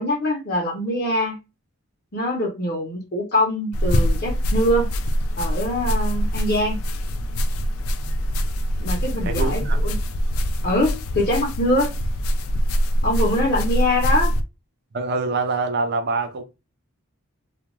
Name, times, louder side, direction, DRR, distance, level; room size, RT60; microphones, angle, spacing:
voice 1, 0.0-1.4 2.1-4.9 5.4-6.8 8.8-10.0 10.6-11.9 13.0-14.3, left 1 dB, 45° left, 0.8 m, -23 dB
sound 1, 3.7-14.4, equal, 75° left, 0.3 m, -23 dB
voice 2, 9.2-9.8 14.9-16.4, right 3 dB, 45° right, 0.6 m, -25 dB
2.4 x 2.3 x 3.0 m
head